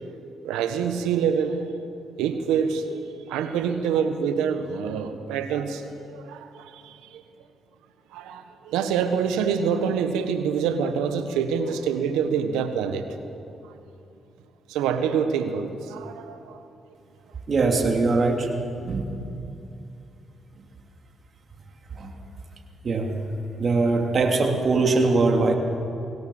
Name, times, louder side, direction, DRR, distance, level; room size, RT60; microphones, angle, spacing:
voice 1, 0.4-1.7 2.2-7.2 8.1-13.1 14.7-16.6, right 7 dB, 90° right, 9 dB, 1.3 m, -26 dB
voice 2, 17.5-18.5 18.8-19.1 21.9-22.1 22.8-23.1 23.6-25.5, right 3 dB, 55° right, 3 dB, 2.9 m, -21 dB
22.5 x 17.5 x 7.2 m, 2.7 s
supercardioid pair, 55°, 0 cm